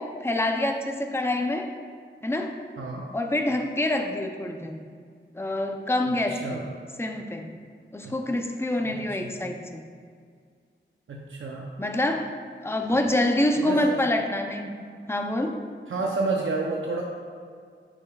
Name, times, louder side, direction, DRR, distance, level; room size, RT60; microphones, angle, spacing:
voice 1, 0.0-1.7 2.2-2.6 3.1-4.8 5.3-6.7 7.0-7.6 7.9-9.8 11.8-12.3 12.6-14.8 15.1-15.6, left 1 dB, 10° left, 4 dB, 0.6 m, -26 dB
voice 2, 2.8-3.1 6.1-6.6 8.0-8.1 8.8-9.3 11.1-11.7 12.9-13.0 13.6-14.0 15.9-17.0, right 3 dB, 80° right, -1 dB, 0.7 m, -30 dB
9.7 x 6.7 x 2.4 m, 2.1 s
wide cardioid pair, 85°, 20 cm